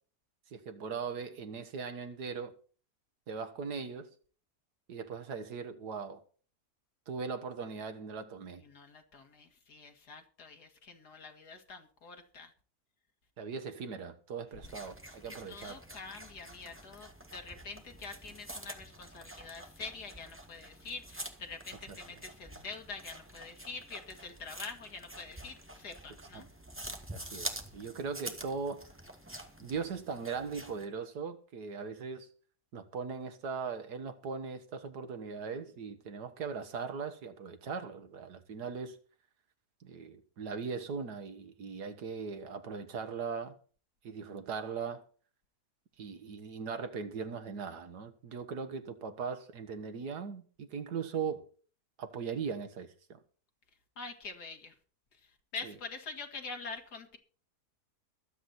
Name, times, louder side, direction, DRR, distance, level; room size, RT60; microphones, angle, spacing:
voice 1, 0.5-2.5 3.3-4.1 4.9-6.2 7.1-8.6 13.4-15.8 21.9-22.0 26.3-26.4 27.1-28.9 29.6-32.3 32.7-39.0 39.8-43.6 44.0-45.0 46.0-51.5 52.0-53.2 55.6-55.7, right 5 dB, 85° right, 1.9 m, -39 dB
voice 2, 8.6-12.5 15.3-26.5 54.0-54.7 55.2-57.2, left 4 dB, 90° left, 2.6 m, -45 dB
sound 1, 14.6-30.9, right 1 dB, 10° right, 1.6 m, -47 dB
22.5 x 8.1 x 4.2 m
omnidirectional pair, 1.7 m